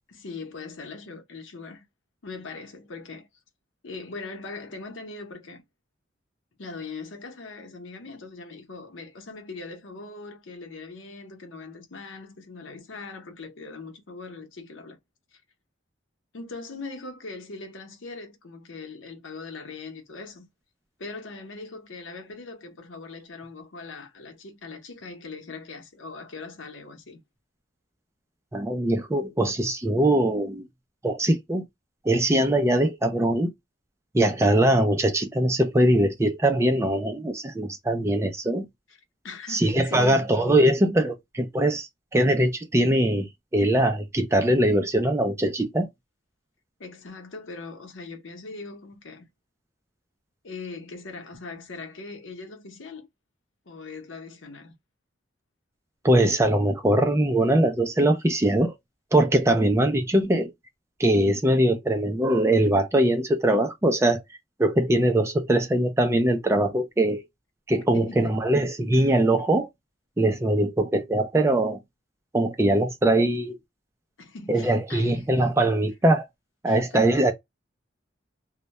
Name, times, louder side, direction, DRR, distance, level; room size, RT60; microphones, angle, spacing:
voice 1, 0.1-1.9 2.2-3.3 3.8-5.6 6.6-15.0 15.3-15.4 16.3-20.5 21.0-27.2 38.9-39.0 39.2-40.3 46.8-49.3 50.4-53.1 53.7-54.8 59.9-60.1 67.9-68.4 68.9-69.2 74.2-75.3 76.7-77.1, left 3 dB, 85° left, 0.7 m, -40 dB
voice 2, 28.5-30.7 31.0-31.6 32.0-33.5 34.1-38.7 39.5-45.9 56.0-58.7 59.1-60.5 61.0-64.2 64.6-67.2 67.7-69.7 70.2-71.8 72.3-73.6 74.5-76.3 76.6-77.3, right 1 dB, 15° right, 0.3 m, -22 dB
2.1 x 2.1 x 2.8 m
head